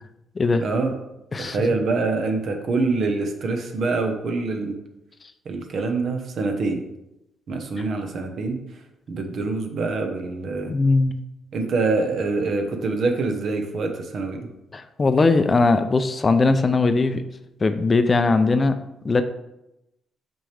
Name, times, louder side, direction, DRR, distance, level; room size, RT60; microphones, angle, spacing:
voice 1, 0.6-1.0 1.4-4.7 5.4-6.8 7.5-8.6 9.1-10.7 11.5-14.5, right 3 dB, 60° right, 5 dB, 1.0 m, -25 dB
voice 2, 10.7-11.2 14.7-17.2 17.6-18.8 19.0-19.2, left 3 dB, 30° left, 9 dB, 0.5 m, -19 dB
6.2 x 4.5 x 3.4 m, 0.89 s
cardioid pair, 90°, 0 cm